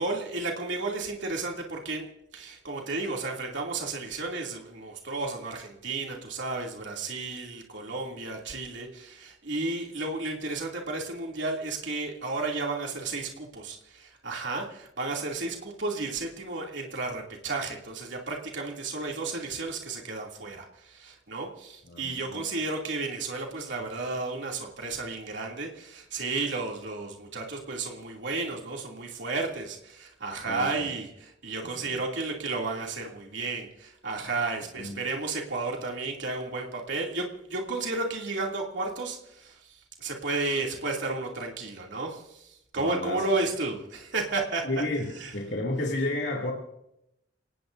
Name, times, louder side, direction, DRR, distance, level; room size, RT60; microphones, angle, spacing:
voice 1, 0.0-2.1 2.3-39.6 40.0-44.7 45.2-45.3, right 3 dB, 80° right, -1 dB, 2.7 m, -33 dB
voice 2, 21.8-22.4 30.4-30.9 31.6-31.9 34.8-35.0 42.8-43.3 44.6-46.5, left 2 dB, 65° left, -2 dB, 2.6 m, -32 dB
29.5 x 18.5 x 2.6 m, 0.82 s
head